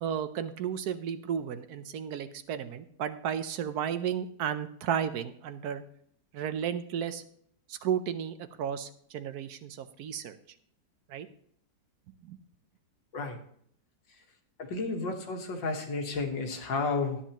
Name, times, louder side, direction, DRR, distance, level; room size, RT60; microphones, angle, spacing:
voice 1, 0.0-5.8 6.3-7.2 7.7-10.4 11.1-11.3 12.2-12.4, right 8 dB, 70° right, 11 dB, 1.1 m, -33 dB
voice 2, 14.6-17.2, left 3 dB, 85° left, 4 dB, 2.1 m, -32 dB
12.5 x 9.9 x 2.9 m, 0.64 s
omnidirectional pair, 2.0 m